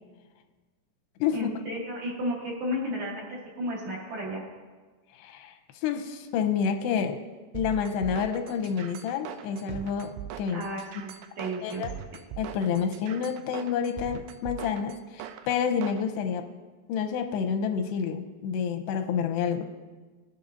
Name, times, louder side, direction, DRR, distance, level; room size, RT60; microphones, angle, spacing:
voice 1, 1.3-4.4 10.5-11.8, equal, 55° right, -4 dB, 2.6 m, -33 dB
voice 2, 5.2-5.5 5.8-7.2 7.5-10.6 11.6-11.9 12.4-16.4 16.9-19.6, left 7 dB, 90° left, 6 dB, 2.8 m, -29 dB
sound 1, 7.5-16.0, right 10 dB, 80° right, 2.4 m, -41 dB
20.5 x 8.2 x 2.7 m, 1.3 s
omnidirectional pair, 4.8 m